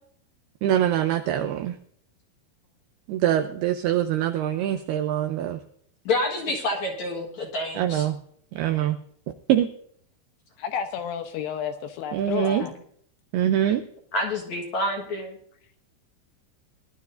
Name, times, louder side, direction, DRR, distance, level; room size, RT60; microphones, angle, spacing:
voice 1, 0.6-1.8 3.1-5.6 7.8-8.2 8.5-9.0 9.5-9.7 12.1-12.7 13.3-13.8, right 11 dB, 85° right, 7 dB, 2.2 m, -24 dB
voice 2, 6.1-8.1 12.6-12.7 14.1-15.4, left 2 dB, 55° left, 0 dB, 2.1 m, -28 dB
voice 3, 10.6-12.7, left 8 dB, 75° left, 7 dB, 2.7 m, -31 dB
20.5 x 12.0 x 2.6 m, 0.64 s
omnidirectional pair, 5.3 m